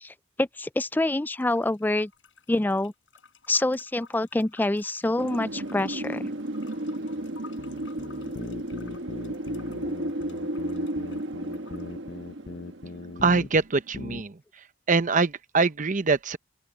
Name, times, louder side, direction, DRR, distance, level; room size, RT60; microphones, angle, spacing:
voice 1, 0.0-2.1 2.5-2.9 3.5-6.3, left 2 dB, 10° left, 0.4 m, -26 dB
sound 1, 1.3-11.9, left 5 dB, 85° left, 5.5 m, -55 dB
Wind, 5.2-13.9, right 1 dB, 75° right, 1.3 m, -34 dB
sound 2, 7.6-13.6 13.9-14.2, left 3 dB, 55° left, 0.6 m, -40 dB
voice 2, 13.2-14.4 14.9-16.4, right 4 dB, 45° right, 0.8 m, -23 dB
open air
head